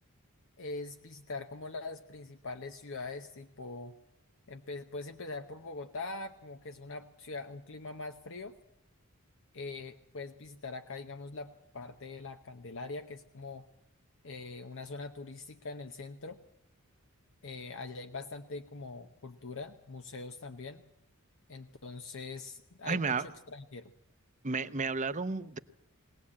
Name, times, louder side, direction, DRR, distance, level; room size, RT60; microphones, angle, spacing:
voice 1, 0.6-3.9 4.5-8.6 9.5-13.6 14.2-16.4 17.4-20.8 21.5-23.9, left 3 dB, 60° left, 7 dB, 0.9 m, -43 dB
voice 2, 22.9-23.2 24.4-25.6, right 4 dB, 35° right, 12 dB, 0.8 m, -32 dB
21.0 x 18.5 x 8.6 m, 0.79 s
head